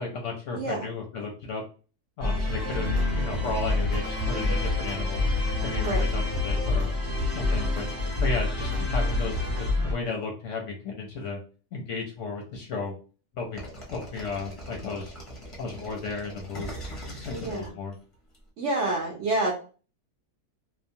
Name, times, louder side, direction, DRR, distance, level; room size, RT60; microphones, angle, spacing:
voice 1, 0.0-1.6 2.2-5.2 5.6-6.9 7.3-7.9 8.2-11.4 11.7-12.9 13.3-13.6 13.9-15.1 15.6-16.7 17.0-17.9, left 3 dB, 65° left, 1 dB, 0.8 m, -34 dB
voice 2, 0.5-0.9 5.8-6.0 17.3-17.7 18.6-19.5, right 2 dB, 60° right, -1 dB, 0.8 m, -28 dB
sound 1, 2.2-9.9, left 2 dB, 10° right, 1.0 m, -27 dB
sound 2, 2.4-9.7, left 2 dB, 85° right, 1.2 m, -35 dB
sound 3, 13.6-18.4, equal, 30° left, 0.5 m, -41 dB
2.9 x 2.1 x 2.6 m, 0.36 s
omnidirectional pair, 1.6 m